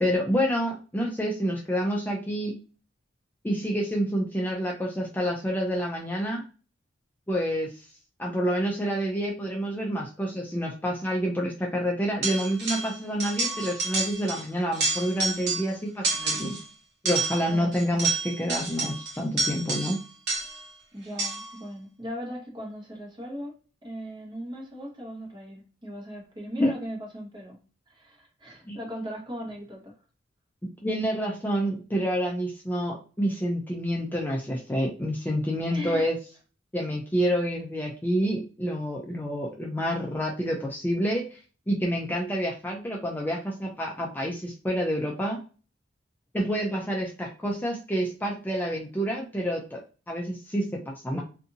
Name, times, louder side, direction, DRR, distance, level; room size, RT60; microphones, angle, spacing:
voice 1, 0.0-2.5 3.4-6.4 7.3-7.9 8.2-16.6 17.0-20.0 26.6-26.7 28.7-28.8 30.8-36.2 36.7-41.4 41.7-45.4 46.3-49.8 50.1-51.2, equal, 10° left, -1 dB, 0.4 m, -28 dB
sound 1, 12.2-12.9 13.2-14.4 14.7-15.7 16.0-16.6 17.1-20.7 21.2-21.6, right 3 dB, 60° right, 0.9 m, -29 dB
voice 2, 17.5-18.0 20.9-23.5 23.8-27.6 27.9-30.0 35.7-36.1, equal, 25° right, -1 dB, 1.0 m, -38 dB
2.6 x 2.5 x 2.6 m, 0.37 s
head